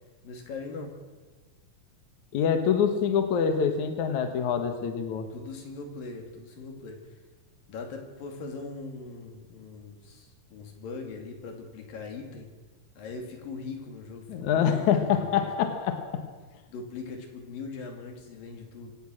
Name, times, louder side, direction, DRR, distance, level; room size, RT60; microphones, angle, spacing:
voice 1, 0.2-0.9 5.3-7.1 7.7-12.5 13.0-15.5 16.7-18.9, left 4 dB, 85° left, 3 dB, 4.4 m, -40 dB
voice 2, 2.3-5.3 14.3-16.2, left 7 dB, 65° left, 7 dB, 2.6 m, -25 dB
24.0 x 17.5 x 6.4 m, 1.3 s
omnidirectional pair, 3.9 m